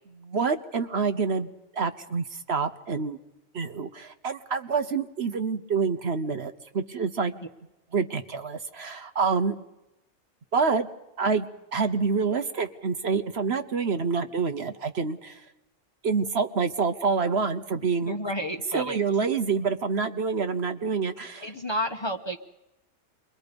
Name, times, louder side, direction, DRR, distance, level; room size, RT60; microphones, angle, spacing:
voice 1, 0.2-3.2 3.5-7.3 7.9-9.5 10.5-10.9 11.2-11.5 11.7-15.4 16.0-18.2 18.7-21.4, right 5 dB, 55° right, 9 dB, 1.2 m, -27 dB
voice 2, 18.1-19.0 21.4-22.4, equal, 20° left, 4 dB, 1.1 m, -31 dB
28.5 x 22.5 x 5.3 m, 0.93 s
omnidirectional pair, 1.4 m